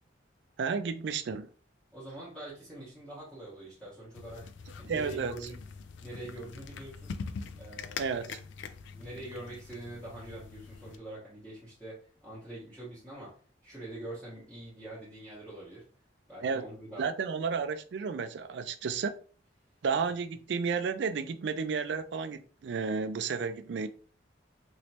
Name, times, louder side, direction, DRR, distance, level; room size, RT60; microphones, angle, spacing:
voice 1, 0.6-1.5 4.9-5.3 8.0-8.4 16.4-16.6 17.0-19.1 19.8-23.9, right 5 dB, 70° right, 0.4 m, -32 dB
voice 2, 1.9-4.5 4.8-5.6 6.0-7.2 7.6-8.1 8.5-8.6 8.9-15.9 16.3-17.1 20.1-20.2, right 2 dB, 5° left, 1.3 m, -44 dB
sound 1, 4.1-11.0, left 5 dB, 80° left, 0.3 m, -43 dB
3.1 x 3.0 x 2.9 m
head